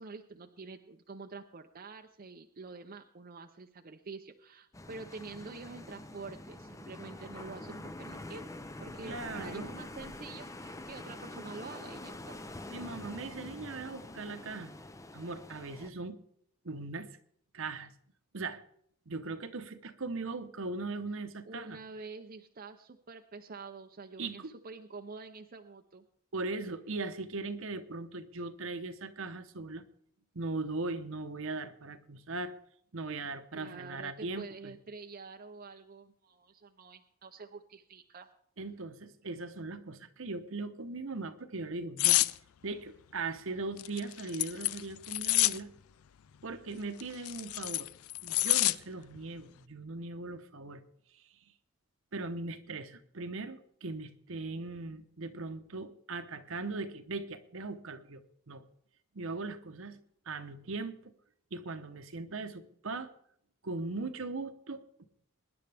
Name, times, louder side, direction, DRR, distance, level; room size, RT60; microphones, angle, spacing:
voice 1, 0.0-8.5 8.8-12.4 21.4-26.0 33.5-38.3, right 4 dB, 40° right, 4 dB, 0.6 m, -47 dB
sound 1, 4.7-15.9, left 1 dB, 15° left, 0.6 m, -45 dB
voice 2, 9.0-9.7 12.7-14.7 15.1-16.2 16.6-17.1 17.5-17.9 18.3-18.6 19.1-21.8 24.2-24.5 26.3-29.8 30.3-32.5 32.9-34.7 38.6-42.2 42.6-45.7 46.4-47.9 48.2-50.8 51.1-51.2 52.1-58.6 59.1-60.0 60.3-61.1 61.5-63.1 63.6-65.1, right 3 dB, 65° right, 10 dB, 1.0 m, -39 dB
sound 2, 42.0-42.3 43.8-45.6 47.0-48.8 49.2-49.4, left 16 dB, 80° left, 0.4 m, -27 dB
23.5 x 10.5 x 3.4 m, 0.69 s
head